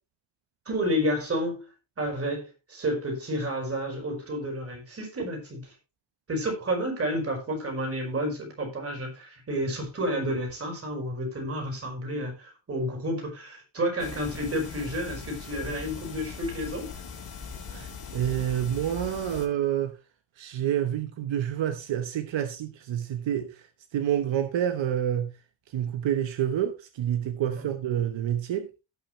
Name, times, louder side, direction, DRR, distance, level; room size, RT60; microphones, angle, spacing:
voice 1, 0.7-1.7 2.0-5.6 6.3-16.9 27.5-27.7, equal, 30° right, 4.6 m, -30 dB
sound 1, 14.0-19.5, left 5 dB, 50° left, 2.7 m, -40 dB
voice 2, 17.7-19.9 20.4-23.6 23.9-25.3 25.7-28.8, right 10 dB, 75° right, 1.2 m, -28 dB
17.5 x 5.9 x 3.2 m
wide cardioid pair, 160°, 46 cm